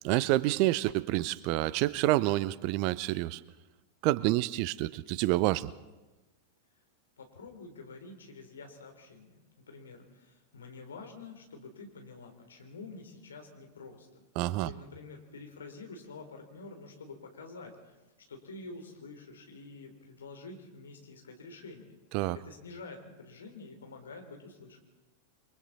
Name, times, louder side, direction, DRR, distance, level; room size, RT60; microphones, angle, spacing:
voice 1, 0.0-3.4 4.0-5.7 14.4-14.7 22.1-22.4, right 17 dB, 45° right, 20 dB, 0.6 m, -28 dB
voice 2, 7.2-14.2 14.6-17.9 18.3-22.0 22.4-24.8, left 3 dB, 70° left, 4 dB, 3.5 m, -48 dB
28.5 x 23.0 x 4.1 m, 1.1 s
figure-of-eight pair, 90°, 0 cm